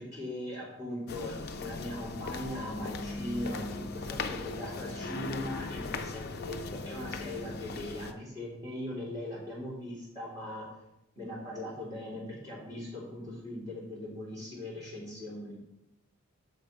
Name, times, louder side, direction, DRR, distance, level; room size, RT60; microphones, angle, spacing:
voice 1, 0.0-10.7 11.1-15.6, left 1 dB, 15° right, -7 dB, 2.9 m, -40 dB
sound 1, 1.1-8.1, left 3 dB, 45° left, 0.5 m, -38 dB
6.6 x 5.8 x 5.0 m, 0.86 s
head